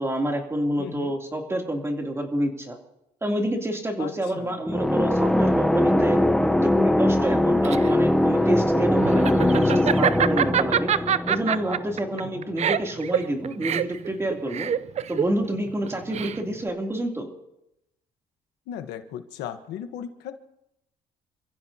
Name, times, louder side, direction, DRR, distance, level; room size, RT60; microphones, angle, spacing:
voice 1, 0.0-2.8 3.2-6.2 6.5-10.9 11.3-14.7 15.1-17.3, right 1 dB, 15° right, 1 dB, 3.0 m, -28 dB
voice 2, 0.8-1.1 4.0-4.6 12.1-12.5 18.7-20.3, left 9 dB, 85° left, 8 dB, 1.2 m, -37 dB
sound 1, 4.7-12.3, left 1 dB, 5° left, 0.8 m, -21 dB
Laughter, 7.3-16.7, right 9 dB, 40° right, 0.6 m, -26 dB
28.5 x 15.0 x 2.8 m, 0.84 s
cardioid pair, 110°, 17 cm